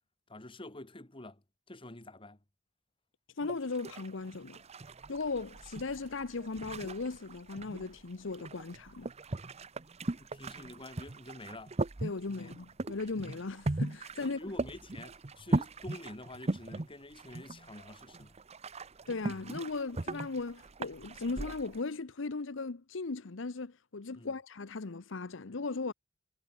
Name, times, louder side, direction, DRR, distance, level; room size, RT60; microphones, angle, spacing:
voice 1, 0.3-2.4 10.2-11.7 12.3-12.5 14.2-18.3 24.2-24.4, left 1 dB, 30° left, 2.0 m, -48 dB
voice 2, 3.4-4.6 5.1-9.1 12.0-14.4 19.1-25.9, left 3 dB, 75° left, 0.8 m, -37 dB
sound 1, 3.4-21.8, right 2 dB, 35° right, 0.8 m, -39 dB
head